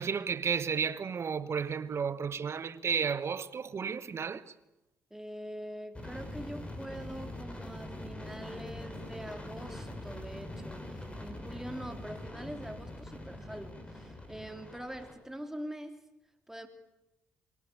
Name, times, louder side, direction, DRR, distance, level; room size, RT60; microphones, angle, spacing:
voice 1, 0.0-4.4, right 6 dB, 45° right, 1.2 m, -32 dB
voice 2, 5.1-16.0 16.5-16.7, equal, 5° right, 3.5 m, -44 dB
sound 1, 5.9-15.1, left 1 dB, 20° left, 5.4 m, -43 dB
23.5 x 17.5 x 8.6 m
hypercardioid pair, 55°, 6 cm